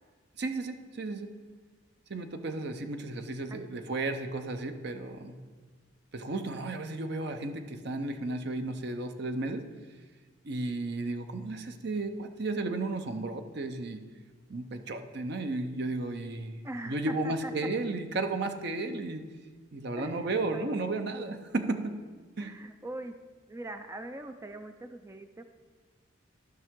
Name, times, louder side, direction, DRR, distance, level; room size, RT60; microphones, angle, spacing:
voice 1, 0.4-1.3 2.1-5.4 6.1-9.6 10.4-14.0 14.5-19.2 19.7-21.9 22.4-22.5, right 2 dB, 55° right, 7 dB, 0.7 m, -34 dB
voice 2, 3.5-3.9 16.6-17.5 20.0-21.0 22.4-23.1 23.5-25.4, right 1 dB, 15° right, 7 dB, 0.4 m, -42 dB
14.0 x 5.7 x 3.7 m, 1.4 s
head